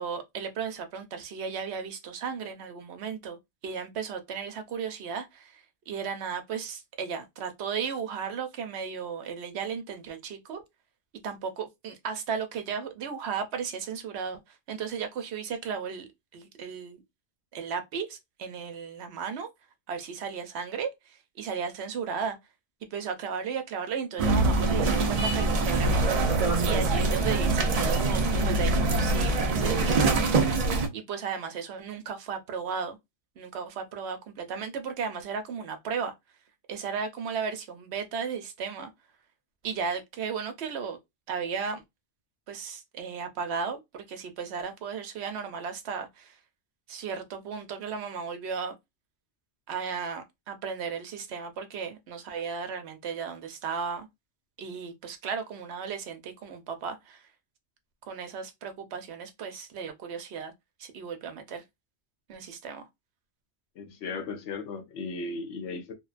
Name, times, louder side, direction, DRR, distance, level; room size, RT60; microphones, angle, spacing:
voice 1, 0.0-3.4 3.6-10.6 11.2-17.0 17.5-19.5 19.9-22.4 22.9-26.0 26.4-33.0 33.4-36.1 36.7-38.9 39.6-41.0 41.3-41.8 42.5-46.4 46.9-48.7 49.7-54.1 54.6-57.2 58.0-60.5 60.8-61.6 62.3-62.9, right 6 dB, 75° right, 0.8 m, -35 dB
sound 1, 24.2-30.9, right 3 dB, 50° right, 0.4 m, -24 dB
voice 2, 63.8-65.9, left 3 dB, 90° left, 1.0 m, -36 dB
2.7 x 2.2 x 2.4 m
omnidirectional pair, 1.2 m